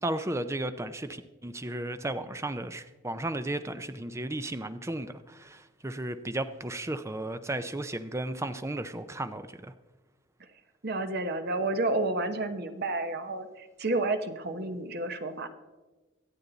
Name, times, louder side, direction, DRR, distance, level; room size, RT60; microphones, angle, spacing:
voice 1, 0.0-9.7, right 1 dB, 15° right, 11 dB, 0.5 m, -34 dB
voice 2, 10.8-15.5, right 2 dB, 50° right, 8 dB, 1.0 m, -30 dB
24.5 x 8.4 x 4.0 m, 1.2 s
head